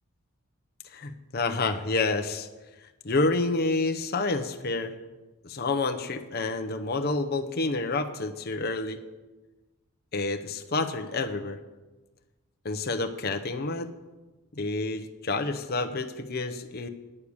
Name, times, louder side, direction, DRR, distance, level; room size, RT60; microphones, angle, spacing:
voice 1, 0.9-2.5 3.0-4.9 5.4-9.0 10.1-11.6 12.6-13.9 14.5-16.9, left 3 dB, 45° left, 6 dB, 0.8 m, -29 dB
9.8 x 6.6 x 8.7 m, 1.2 s
head